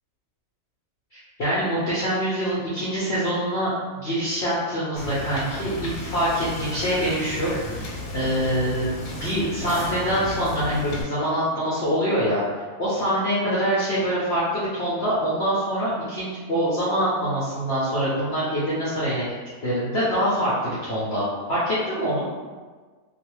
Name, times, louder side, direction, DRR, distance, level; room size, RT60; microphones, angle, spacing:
voice 1, 1.1-8.9 9.2-12.4 12.8-19.3 19.6-22.3, equal, 55° left, -10 dB, 0.8 m, -25 dB
Wind / Boat Water vehicle, 5.0-11.0, left 1 dB, 85° left, 1.2 m, -34 dB
2.3 x 2.3 x 3.0 m, 1.4 s
omnidirectional pair, 1.7 m